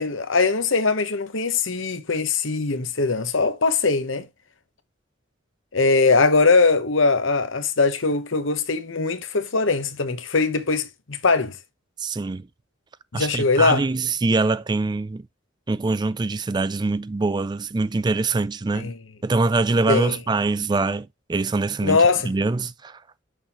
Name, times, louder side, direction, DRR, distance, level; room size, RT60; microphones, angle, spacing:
voice 1, 0.0-4.3 5.7-11.6 13.1-13.8 18.7-19.0 19.9-20.2 21.8-22.3, left 4 dB, 80° left, 1.1 m, -21 dB
voice 2, 12.0-12.5 13.1-15.2 15.7-18.9 19.2-23.0, right 3 dB, 20° right, 0.3 m, -24 dB
6.4 x 5.8 x 2.9 m
head